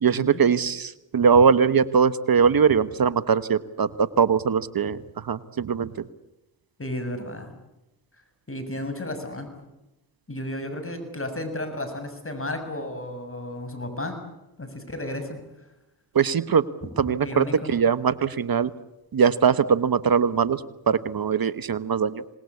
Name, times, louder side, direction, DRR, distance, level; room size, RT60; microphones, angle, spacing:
voice 1, 0.0-5.9 16.1-16.6 17.0-18.7 19.1-22.2, right 6 dB, 50° right, 15 dB, 1.2 m, -21 dB
voice 2, 6.8-7.5 8.5-9.5 10.3-14.2 14.6-15.3 17.2-17.8, left 1 dB, 30° left, 8 dB, 7.3 m, -33 dB
27.0 x 19.5 x 8.4 m, 0.95 s
supercardioid pair, 45°, 46 cm